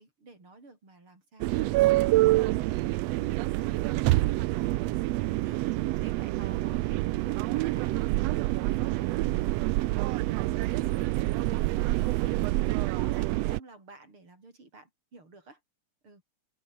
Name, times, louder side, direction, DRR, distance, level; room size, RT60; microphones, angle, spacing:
voice 1, 0.0-5.0 5.3-15.6 16.0-16.2, right 3 dB, 40° right, 8.8 m, -53 dB
sound 1, 1.4-13.6, right 18 dB, 85° right, 1.5 m, -27 dB
sound 2, 7.1-13.3, left 4 dB, 45° left, 4.7 m, -63 dB
omnidirectional pair, 3.5 m